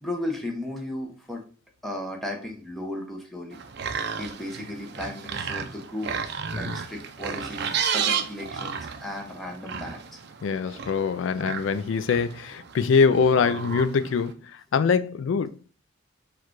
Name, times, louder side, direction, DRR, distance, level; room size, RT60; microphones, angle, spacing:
voice 1, 0.0-1.4 1.8-3.6 4.2-10.2, left 1 dB, ahead, 0.8 m, -35 dB
sound 1, 3.5-14.3, right 7 dB, 55° right, 0.4 m, -33 dB
voice 2, 10.4-15.7, left 5 dB, 70° left, 0.3 m, -23 dB
4.6 x 2.4 x 4.5 m
head